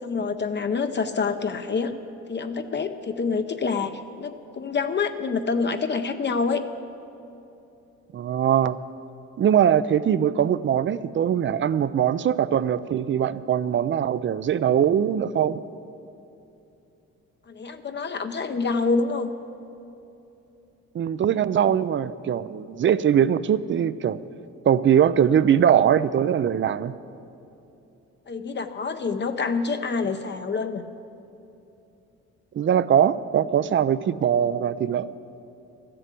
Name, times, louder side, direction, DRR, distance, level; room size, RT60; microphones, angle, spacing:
voice 1, 0.0-1.9 2.3-3.9 4.2-6.6 17.5-19.3 28.3-30.9, left 4 dB, 35° left, 7 dB, 0.7 m, -27 dB
voice 2, 8.1-8.8 9.4-15.6 20.9-24.2 24.7-26.9 32.6-35.1, right 9 dB, 40° right, 16 dB, 0.4 m, -21 dB
13.5 x 7.7 x 8.3 m, 2.8 s
cardioid pair, 90°, 30 cm